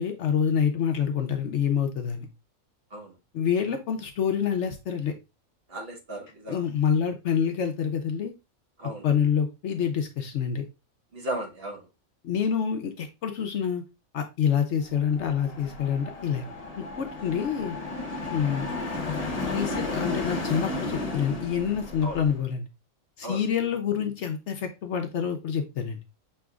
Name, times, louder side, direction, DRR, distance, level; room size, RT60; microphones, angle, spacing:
voice 1, 0.0-2.3 3.3-5.1 6.5-8.3 9.0-10.6 12.2-13.8 14.1-16.4 16.8-17.8 18.3-18.7 19.5-22.7 23.2-26.0, left 7 dB, 65° left, 6 dB, 0.9 m, -27 dB
voice 2, 5.7-6.6 8.8-9.1 11.1-11.9 22.0-22.2 23.2-23.4, right 1 dB, 45° right, 1 dB, 1.3 m, -35 dB
sound 1, 15.0-22.4, left 2 dB, 30° left, 0.9 m, -33 dB
6.2 x 3.1 x 2.3 m, 0.26 s
omnidirectional pair, 1.4 m